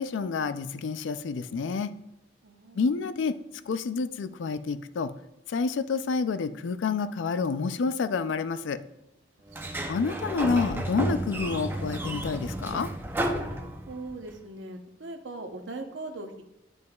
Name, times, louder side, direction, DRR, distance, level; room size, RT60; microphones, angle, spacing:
voice 1, 0.0-1.9 2.8-3.4 3.7-5.1 5.5-8.8 9.9-12.9, left 5 dB, 80° left, 13 dB, 0.4 m, -28 dB
voice 2, 2.4-2.9 13.9-16.4, right 2 dB, 85° right, 5 dB, 0.8 m, -40 dB
Sliding door, 9.5-14.2, right 1 dB, 10° right, 0.5 m, -32 dB
9.4 x 5.3 x 2.3 m, 0.90 s
head